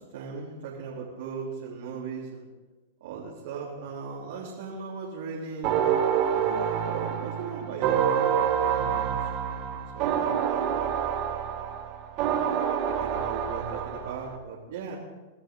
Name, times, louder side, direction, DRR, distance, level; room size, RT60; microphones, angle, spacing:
voice 1, 0.1-2.5 3.0-5.8 6.3-9.2 9.5-10.9 12.2-12.3 12.8-14.9, right 5 dB, 75° right, -4 dB, 3.4 m, -37 dB
sound 1, 5.6-14.4, right 8 dB, 45° right, 2.1 m, -27 dB
23.5 x 12.5 x 3.9 m, 1.2 s
hypercardioid pair, 125°, 0 cm